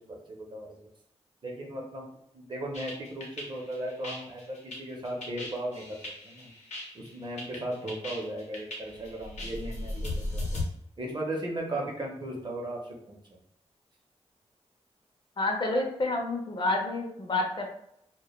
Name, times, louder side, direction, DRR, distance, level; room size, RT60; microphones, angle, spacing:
voice 1, 0.1-0.8 1.4-2.1 2.3-6.0 6.2-6.5 6.9-10.6 11.0-13.4, right 1 dB, 40° right, -1 dB, 0.6 m, -36 dB
sound 1, 2.7-10.6, left 2 dB, 75° left, 0.7 m, -37 dB
voice 2, 15.4-17.7, left 2 dB, 45° left, 1 dB, 0.5 m, -29 dB
2.1 x 2.1 x 3.0 m, 0.74 s
wide cardioid pair, 125°, 12 cm